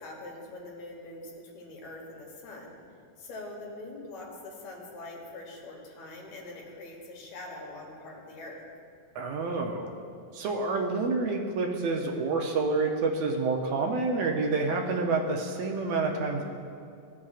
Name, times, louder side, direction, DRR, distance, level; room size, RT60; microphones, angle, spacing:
voice 1, 0.0-2.8 3.2-8.6, left 2 dB, 65° left, -1 dB, 2.5 m, -43 dB
voice 2, 9.1-9.9 10.3-16.4, right 3 dB, 75° right, 1 dB, 1.6 m, -28 dB
14.5 x 7.3 x 2.4 m, 2.4 s
omnidirectional pair, 3.7 m